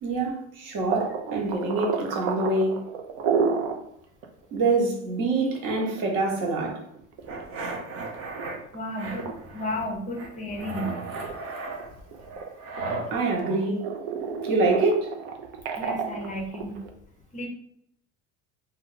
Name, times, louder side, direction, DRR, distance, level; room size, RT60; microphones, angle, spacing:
voice 1, 0.0-2.8 4.5-6.8 13.1-13.8 14.5-15.1, right 2 dB, 60° right, 0 dB, 1.1 m, -25 dB
sound 1, 0.9-3.8 4.2-4.3 4.7-4.8 5.5-7.8 8.3-8.8 9.2-9.3 9.9-10.8 11.1-13.0 13.4-16.9, right 6 dB, 85° right, 0.6 m, -30 dB
sound 2, 7.3-8.6 9.0-9.9 10.1-13.1, right 3 dB, 40° right, 0.6 m, -35 dB
voice 2, 8.7-10.9 15.7-16.8 17.3-17.5, left 1 dB, 20° left, 1 dB, 0.5 m, -33 dB
2.3 x 2.3 x 3.7 m, 0.74 s
supercardioid pair, 120°, 36 cm